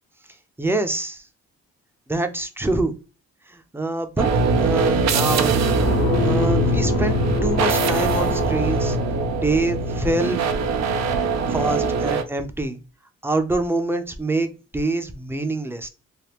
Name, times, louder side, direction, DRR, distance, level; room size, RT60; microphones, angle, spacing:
voice 1, 0.6-1.2 2.1-2.9 3.5-5.6 6.2-9.0 9.3-10.4 11.5-12.8 13.2-15.9, right 2 dB, 10° right, 7 dB, 0.6 m, -25 dB
sound 1, 4.2-12.2, right 3 dB, 60° right, 0.6 m, -22 dB
sound 2, 5.8-9.3, left 6 dB, 50° left, 0.6 m, -28 dB
3.4 x 2.1 x 3.0 m, 0.32 s
cardioid pair, 90°, 30 cm